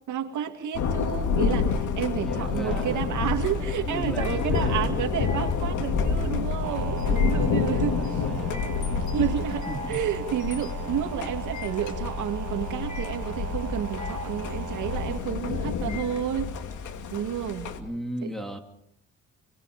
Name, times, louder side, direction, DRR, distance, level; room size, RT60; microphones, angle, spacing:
voice 1, 0.1-8.3 9.1-9.6 9.9-16.5 17.1-17.7, right 9 dB, 75° right, 5 dB, 2.6 m, -30 dB
Thunder, 0.8-17.8, left 5 dB, 75° left, 2.6 m, -28 dB
voice 2, 2.2-3.4 3.8-5.1 7.7-8.7 9.7-10.0 17.8-18.6, right 1 dB, ahead, 4 dB, 3.3 m, -36 dB
sound 1, 2.6-3.0 6.6-15.2, right 7 dB, 55° right, 3.2 m, -39 dB
sound 2, 4.0-16.7, left 4 dB, 25° left, 3.1 m, -44 dB
29.5 x 22.0 x 5.2 m, 0.75 s
cardioid pair, 90°, 30 cm